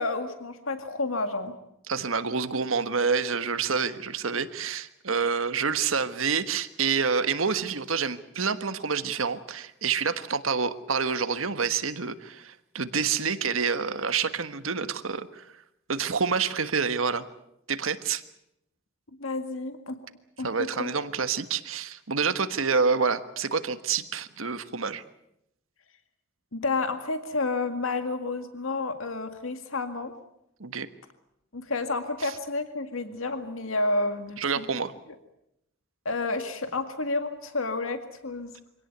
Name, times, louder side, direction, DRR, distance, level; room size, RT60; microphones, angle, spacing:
voice 1, 0.0-1.5 19.2-20.0 20.4-20.9 26.5-30.1 31.5-34.6 36.1-38.5, left 3 dB, 85° left, 8 dB, 2.0 m, -30 dB
voice 2, 1.9-15.4 15.9-17.2 17.7-18.2 20.4-25.0 30.6-30.9 34.4-34.9, right 5 dB, 80° right, 11 dB, 1.4 m, -28 dB
25.0 x 17.5 x 9.3 m, 0.80 s
head